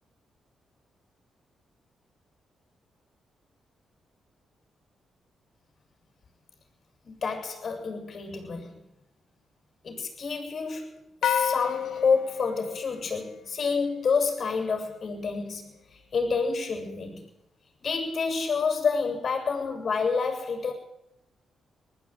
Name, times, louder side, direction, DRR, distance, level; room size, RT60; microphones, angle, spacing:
voice 1, 7.0-8.8 9.8-17.3 17.8-20.7, left 5 dB, 55° left, 5 dB, 7.7 m, -29 dB
sound 1, 11.2-13.8, left 9 dB, 75° left, 1.2 m, -30 dB
20.0 x 15.0 x 9.3 m, 0.84 s
supercardioid pair, 50°, 0 cm